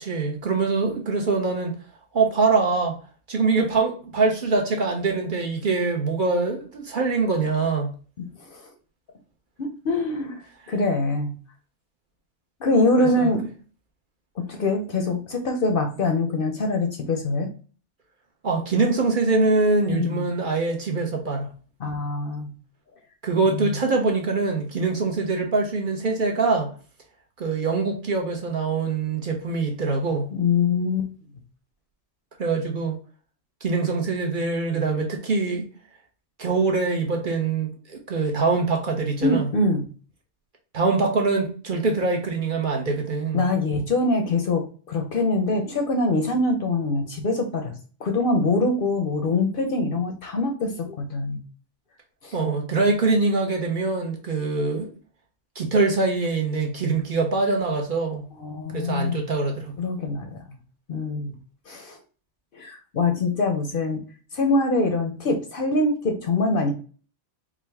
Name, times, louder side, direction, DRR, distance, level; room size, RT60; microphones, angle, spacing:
voice 1, 0.0-1.8 2.1-3.0 3.3-7.9 13.0-13.3 18.4-21.5 23.2-26.7 27.4-30.3 32.4-33.0 33.6-35.7 36.4-39.5 40.7-43.5 52.3-54.9 55.6-58.2 58.7-59.7, right 3 dB, 50° right, 0.9 m, -23 dB
voice 2, 9.6-10.4 10.7-11.3 12.6-13.4 14.4-17.5 19.8-20.3 21.8-22.5 23.5-23.7 30.3-31.1 39.2-39.9 43.3-47.7 48.0-51.4 52.2-52.3 58.4-59.2 59.8-60.6 60.9-61.3 61.7-62.0 62.5-64.0 64.3-66.7, left 2 dB, 55° left, 0.7 m, -24 dB
4.8 x 2.1 x 3.3 m
omnidirectional pair, 1.2 m